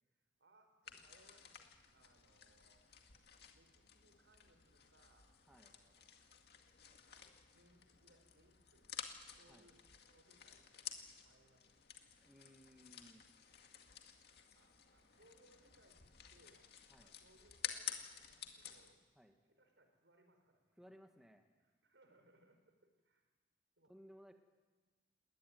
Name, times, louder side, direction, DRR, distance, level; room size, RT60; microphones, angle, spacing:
voice 1, 0.1-2.9 3.5-6.2 6.8-9.8 10.1-12.6 14.5-19.0 19.4-21.2 21.6-23.3 23.8-23.9, right 1 dB, 80° right, 5 dB, 4.8 m, -72 dB
sound 1, 0.8-18.9, left 9 dB, 60° left, 2.1 m, -53 dB
voice 2, 12.2-13.2 16.9-17.1 19.1-19.4 20.8-21.4 23.8-24.3, equal, 5° right, 4 dB, 1.6 m, -61 dB
20.5 x 19.0 x 9.4 m, 1.3 s
head